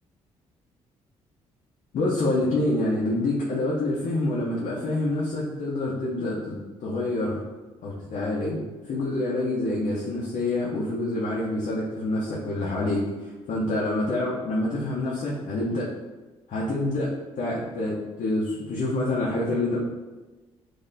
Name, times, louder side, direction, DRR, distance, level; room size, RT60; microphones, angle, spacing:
voice 1, 1.9-7.4 7.8-15.9 16.5-19.8, left 2 dB, 55° left, -5 dB, 0.7 m, -27 dB
3.9 x 2.8 x 2.7 m, 1.2 s
hypercardioid pair, 45°, 15 cm